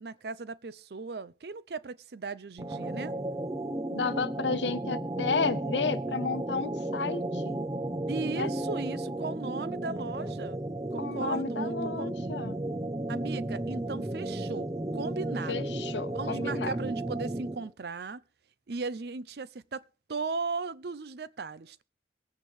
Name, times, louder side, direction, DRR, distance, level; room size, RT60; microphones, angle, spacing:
voice 1, 0.0-3.2 8.1-10.6 10.9-12.1 13.1-15.8 16.1-18.2 18.7-19.8 20.1-21.8, right 4 dB, 65° right, 0.5 m, -37 dB
sound 1, 2.6-17.7, right 1 dB, 20° right, 0.7 m, -34 dB
voice 2, 3.9-7.6 8.3-8.5 11.0-12.6 15.5-16.7, left 4 dB, 85° left, 0.9 m, -32 dB
23.0 x 8.9 x 3.2 m
head